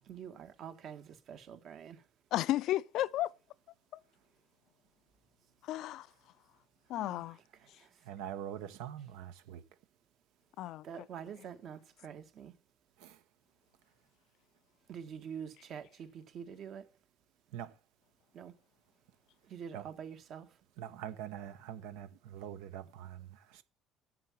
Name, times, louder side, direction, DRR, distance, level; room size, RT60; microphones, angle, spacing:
voice 1, 0.0-2.0 6.9-8.1 10.8-12.6 14.9-16.9 18.3-18.6 19.4-20.6, right 8 dB, 60° right, 1.5 m, -46 dB
voice 2, 2.3-3.3 5.6-6.1 6.9-7.4 10.6-10.9, left 14 dB, 70° left, 0.4 m, -33 dB
voice 3, 8.0-9.6 13.0-13.2 17.5-17.7 19.7-19.9 20.8-23.6, right 10 dB, 85° right, 0.9 m, -44 dB
7.6 x 7.6 x 7.2 m
supercardioid pair, 80°, 0 cm